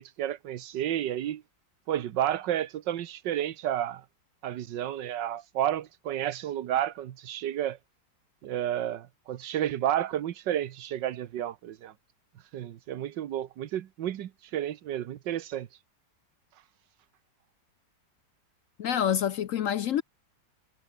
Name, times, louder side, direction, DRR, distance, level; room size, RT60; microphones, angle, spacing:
voice 1, 0.0-1.4 1.9-4.0 4.4-7.8 8.4-11.9 12.5-15.7, right 11 dB, 90° right, 1.6 m, -31 dB
voice 2, 18.8-20.0, left 9 dB, 65° left, 0.8 m, -27 dB
omnidirectional pair, 1.9 m